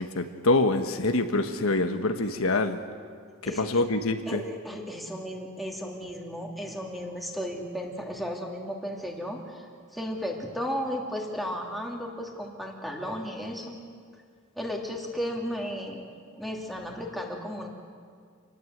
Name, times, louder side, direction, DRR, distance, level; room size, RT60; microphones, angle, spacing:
voice 1, 0.0-2.8 3.4-4.4, left 2 dB, 80° left, 7 dB, 1.4 m, -25 dB
voice 2, 3.4-3.8 4.3-9.6 9.9-13.8 14.6-16.0 16.4-17.7, equal, ahead, -1 dB, 2.8 m, -34 dB
27.0 x 19.0 x 8.0 m, 2.1 s
head